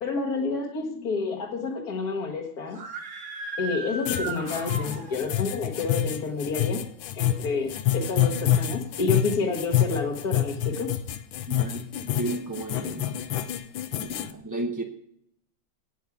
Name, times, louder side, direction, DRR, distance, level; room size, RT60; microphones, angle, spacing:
voice 1, 0.0-2.8 3.6-6.8 7.1-10.9, left 4 dB, 50° left, -1 dB, 1.7 m, -29 dB
Screaming, 2.6-5.4, right 2 dB, 75° right, 2.3 m, -36 dB
sound 1, 4.1-14.3, left 11 dB, 80° left, 1.5 m, -27 dB
voice 2, 11.5-13.1 14.0-14.8, right 2 dB, 20° right, 0 dB, 0.5 m, -33 dB
9.6 x 9.0 x 8.2 m, 0.73 s
omnidirectional pair, 2.2 m